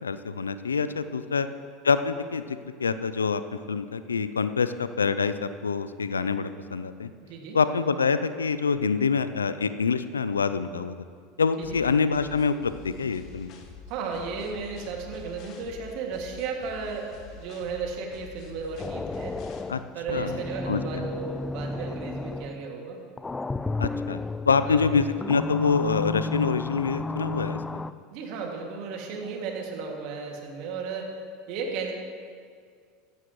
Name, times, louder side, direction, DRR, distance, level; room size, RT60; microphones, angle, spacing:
voice 1, 0.0-1.5 1.8-7.1 7.5-11.0 11.4-13.5 19.7-19.8 20.1-20.4 20.7-21.1 23.8-24.2 24.5-27.8, left 5 dB, 90° left, 13 dB, 0.4 m, -26 dB
voice 2, 1.2-1.5 7.2-7.6 11.6-11.8 13.9-19.4 19.9-23.0 24.7-24.9 28.1-31.1 31.5-31.9, right 5 dB, 60° right, 1 dB, 2.2 m, -34 dB
sound 1, 11.6-19.6, left 5 dB, 55° left, 1.4 m, -46 dB
sound 2, 18.8-22.7 23.2-27.9, left 3 dB, 15° left, 0.3 m, -33 dB
15.0 x 14.0 x 3.1 m, 2.1 s
hypercardioid pair, 80°, 0 cm